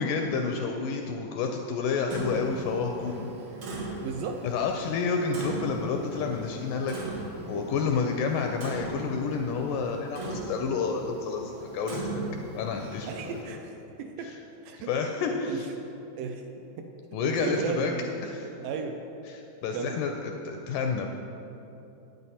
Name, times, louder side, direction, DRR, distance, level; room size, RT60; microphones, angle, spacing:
voice 1, 0.0-3.3 4.4-12.0 12.5-13.4 14.2-14.4 14.9-15.7 17.1-17.9 18.2-18.5 19.3-21.1, left 5 dB, 80° left, 3 dB, 1.9 m, -30 dB
Clock, 2.1-13.4, right 2 dB, 65° right, 1.3 m, -38 dB
voice 2, 4.0-4.5 13.1-14.3 14.6-14.9 15.5-15.6 16.2-16.4 16.8-16.9 17.2-18.1 18.6-19.0 19.7-20.0, right 5 dB, 80° right, 4 dB, 2.0 m, -34 dB
9.3 x 9.2 x 4.2 m, 2.9 s
omnidirectional pair, 4.1 m